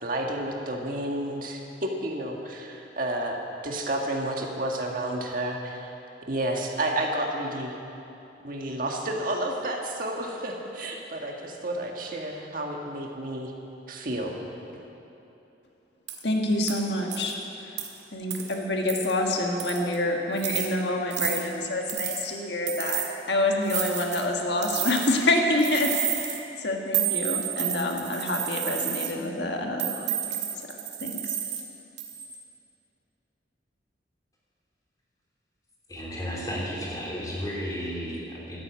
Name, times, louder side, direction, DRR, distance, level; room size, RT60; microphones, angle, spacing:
voice 1, 0.0-5.9 6.3-7.8 8.4-13.5 13.9-14.4, right 1 dB, 50° right, 1 dB, 1.6 m, -31 dB
sound 1, 16.1-16.2 16.7-16.8 17.1-17.3 17.8-17.9 18.3-18.5 18.9-19.1 19.6-19.9 20.4-20.7 21.1-21.4 21.9-22.2 22.7-23.1 23.7-24.3 24.6-25.2 25.6-26.4 26.9-29.1 29.8-31.6 32.0-32.3, right 10 dB, 70° right, 1.8 m, -30 dB
voice 2, 16.2-17.4 17.6-17.8 18.1-25.9 26.2-30.5 31.0-31.4, left 1 dB, 70° left, 1 dB, 1.6 m, -27 dB
voice 3, 35.9-38.6, equal, 20° left, -5 dB, 3.4 m, -33 dB
12.5 x 11.0 x 8.3 m, 2.9 s
head